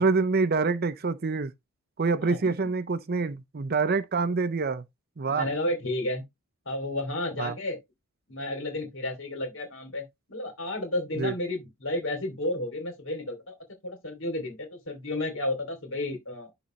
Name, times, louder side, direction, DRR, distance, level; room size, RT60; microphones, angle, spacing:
voice 1, 0.0-1.5 2.0-4.8 5.2-5.5 7.4-7.5 11.2-11.3, right 4 dB, 45° right, 0.6 m, -26 dB
voice 2, 2.2-2.7 5.3-6.2 6.7-7.8 8.3-13.6 13.8-16.5, left 1 dB, 60° left, 2.8 m, -32 dB
11.0 x 3.9 x 3.1 m
head